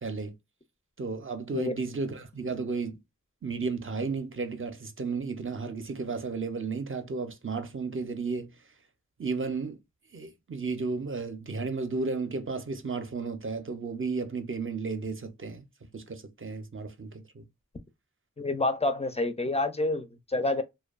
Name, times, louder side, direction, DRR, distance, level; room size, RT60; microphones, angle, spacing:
voice 1, 0.0-0.3 1.0-2.9 3.4-8.5 9.2-9.8 10.1-15.6 15.9-17.4, right 4 dB, 40° right, 0.5 m, -33 dB
voice 2, 18.4-20.6, left 2 dB, 20° left, 0.3 m, -28 dB
2.5 x 2.2 x 2.3 m
wide cardioid pair, 40°, 32 cm